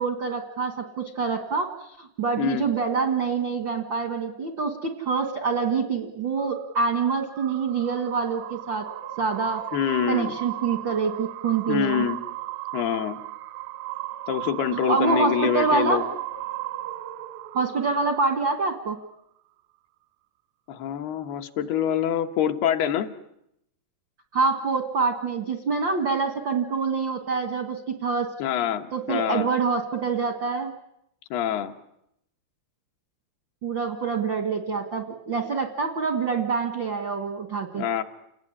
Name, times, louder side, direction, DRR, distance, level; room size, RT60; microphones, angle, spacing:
voice 1, 0.0-8.8 9.2-9.6 10.1-12.0 14.7-16.0 17.5-19.0 24.3-28.3 28.9-30.7 33.6-37.8, right 4 dB, 70° right, 5 dB, 1.1 m, -26 dB
voice 2, 2.4-2.7 9.7-10.3 11.7-12.2 12.7-13.2 14.3-16.0 20.7-23.1 28.4-29.5 31.3-31.7 37.8-38.0, left 9 dB, 75° left, 5 dB, 3.1 m, -25 dB
sound 1, 6.4-18.9, right 14 dB, 90° right, 3.4 m, -36 dB
29.5 x 19.5 x 9.7 m, 0.80 s
omnidirectional pair, 4.7 m